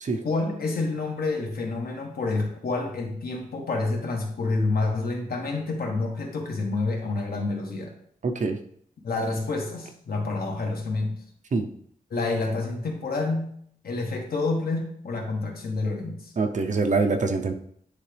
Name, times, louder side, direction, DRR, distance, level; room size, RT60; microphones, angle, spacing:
voice 1, 0.2-7.9 9.0-11.1 12.1-13.5 13.8-16.2, left 3 dB, 85° left, 1 dB, 1.4 m, -28 dB
voice 2, 8.2-8.6 11.5-11.7 16.4-17.5, right 3 dB, 55° right, 5 dB, 0.7 m, -24 dB
9.8 x 3.6 x 3.4 m, 0.65 s
wide cardioid pair, 150°, 15 cm